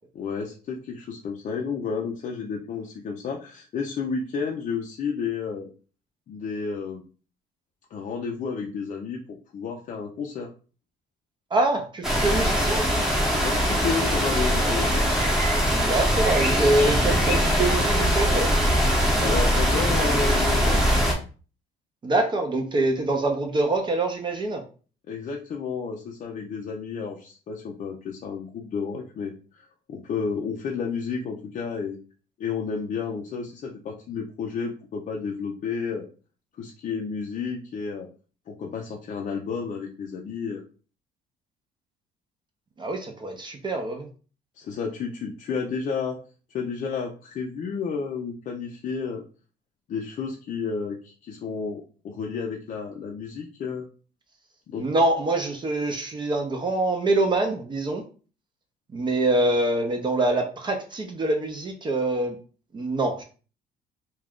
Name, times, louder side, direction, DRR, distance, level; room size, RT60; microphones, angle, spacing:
voice 1, 0.1-5.7 6.3-7.0 7.9-9.2 9.5-10.5 13.4-15.1 19.2-20.8 25.1-32.0 32.4-36.1 36.6-38.1 38.5-40.6 44.6-46.2 46.5-49.2 49.9-53.8 54.7-54.9, left 5 dB, 45° left, 0 dB, 0.5 m, -31 dB
voice 2, 11.5-12.9 15.7-18.5 22.0-24.6 42.8-44.1 54.8-58.0 58.9-62.4 62.7-63.2, right 2 dB, 25° right, 3 dB, 0.5 m, -25 dB
sound 1, 12.0-21.1, equal, 5° right, 0.8 m, -22 dB
2.4 x 2.3 x 3.4 m, 0.37 s
cardioid pair, 110°, 17 cm